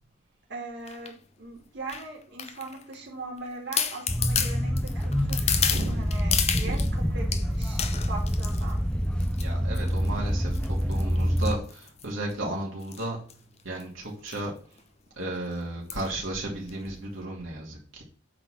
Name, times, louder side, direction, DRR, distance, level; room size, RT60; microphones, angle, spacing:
voice 1, 0.5-5.6 5.9-8.8, right 3 dB, 55° right, -2 dB, 2.5 m, -40 dB
sound 1, 0.9-1.1 1.9-2.9 3.4-3.5 3.7-6.9 7.3-8.7 9.2-9.5 9.7-10.1 10.5-12.3 12.8-13.0 13.3-13.4 13.6-13.8 14.3-14.4 14.8-14.9 15.9-16.1 16.7-16.8, left 8 dB, 30° left, 0.8 m, -31 dB
sound 2, 4.1-11.5, equal, 5° left, 0.5 m, -27 dB
voice 2, 5.7-6.1 6.4-6.9 7.8-8.0 9.4-13.4 13.6-14.6 15.2-18.0, right 1 dB, 75° right, -2 dB, 2.6 m, -34 dB
8.7 x 4.0 x 6.4 m, 0.40 s
head